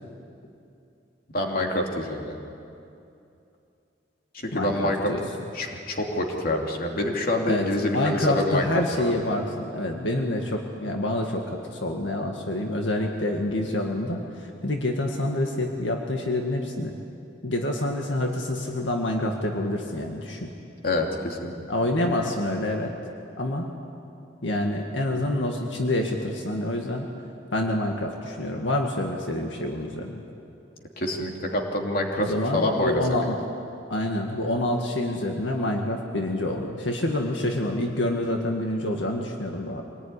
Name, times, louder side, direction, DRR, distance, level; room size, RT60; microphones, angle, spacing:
voice 1, 1.3-2.4 4.3-5.1 5.5-8.6 9.0-9.1 20.8-21.5 31.0-33.0, left 1 dB, 50° left, 1 dB, 3.0 m, -26 dB
voice 2, 4.5-5.2 7.5-16.9 17.4-20.5 21.7-22.9 23.4-23.7 24.4-27.1 27.5-30.2 32.2-33.4 33.9-39.8, left 1 dB, 80° left, 2 dB, 2.0 m, -27 dB
25.5 x 19.5 x 9.9 m, 2.7 s
head